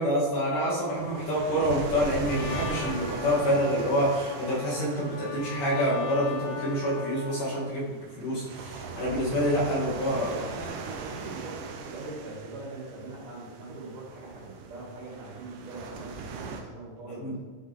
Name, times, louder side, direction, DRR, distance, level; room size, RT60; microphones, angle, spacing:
voice 1, 0.0-10.3 17.2-17.3, equal, 60° left, -8 dB, 4.1 m, -27 dB
sound 1, 1.0-16.6, right 5 dB, 90° right, 1.9 m, -40 dB
Trumpet, 2.2-7.7, left 5 dB, 90° left, 1.9 m, -39 dB
voice 2, 10.2-17.4, right 2 dB, 55° right, -8 dB, 3.5 m, -41 dB
12.5 x 5.7 x 3.4 m, 1.4 s
omnidirectional pair, 4.8 m